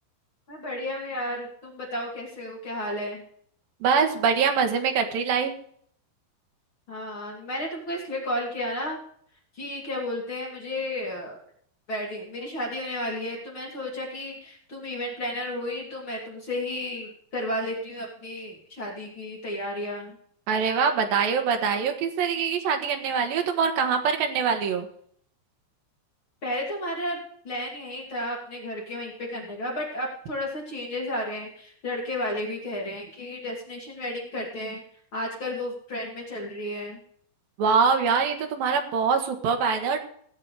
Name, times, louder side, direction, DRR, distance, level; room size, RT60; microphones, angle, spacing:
voice 1, 0.5-3.2 6.9-9.0 9.5-11.4 11.9-20.2 26.4-27.2 27.4-34.8 35.1-37.0, left 1 dB, 35° left, -3 dB, 2.3 m, -32 dB
voice 2, 3.8-5.5 20.5-24.9 37.6-40.0, right 6 dB, 60° right, 4 dB, 2.6 m, -24 dB
19.0 x 7.7 x 4.9 m, 0.63 s
omnidirectional pair, 5.6 m